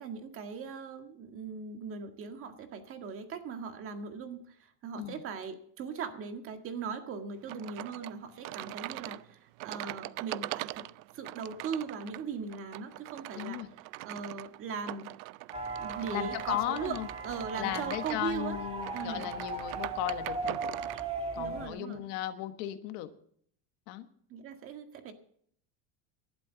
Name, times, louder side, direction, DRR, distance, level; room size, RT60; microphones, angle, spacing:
voice 1, 0.0-10.8 11.1-13.6 14.0-15.1 15.7-17.0 17.2-18.6 18.9-19.3 21.4-22.0 24.3-25.1, right 6 dB, 35° right, 6 dB, 1.8 m, -39 dB
sound 1, 7.5-21.1, right 20 dB, 60° right, 0.5 m, -42 dB
voice 2, 13.3-13.7 16.1-17.1 17.6-20.6 21.3-23.1 23.9-24.1, left 14 dB, 65° left, 9 dB, 1.4 m, -36 dB
sound 2, 15.5-21.7, right 3 dB, 15° right, 2.4 m, -38 dB
19.0 x 12.0 x 4.0 m, 0.63 s
cardioid pair, 165°, 36 cm